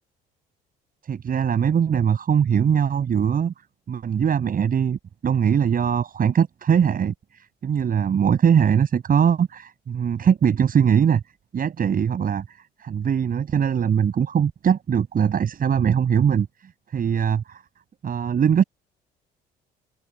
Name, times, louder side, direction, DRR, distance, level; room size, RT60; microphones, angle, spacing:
voice 1, 1.0-3.5 3.9-11.2 11.5-12.4 12.8-16.5 16.9-17.6 18.0-18.6, right 8 dB, 50° right, 7.6 m, -21 dB
open air
supercardioid pair, 85°, 19 cm